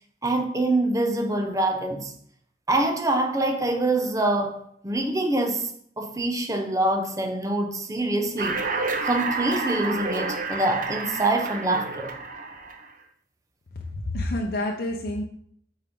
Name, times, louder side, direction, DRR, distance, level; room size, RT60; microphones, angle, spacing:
voice 1, 0.2-2.1 2.7-5.7 6.0-8.6 9.0-12.1, right 2 dB, 20° right, 0.9 m, -25 dB
sound 1, 8.4-12.9, right 4 dB, 50° right, 0.9 m, -30 dB
voice 2, 14.0-15.2, left 1 dB, 60° left, 0.7 m, -28 dB
8.9 x 4.4 x 3.8 m
head